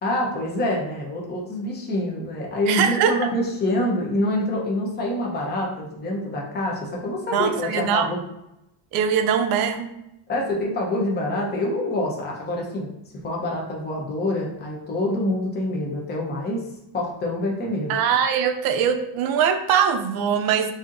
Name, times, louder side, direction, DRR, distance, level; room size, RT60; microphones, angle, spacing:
voice 1, 0.0-8.2 10.3-12.9 13.2-16.6 16.9-18.0, left 1 dB, 25° left, -1 dB, 0.8 m, -26 dB
voice 2, 2.7-3.1 7.3-8.1 8.9-9.9 17.9-20.7, right 8 dB, 60° right, 6 dB, 0.6 m, -21 dB
6.8 x 2.8 x 2.6 m, 0.85 s
cardioid pair, 175°, 42 cm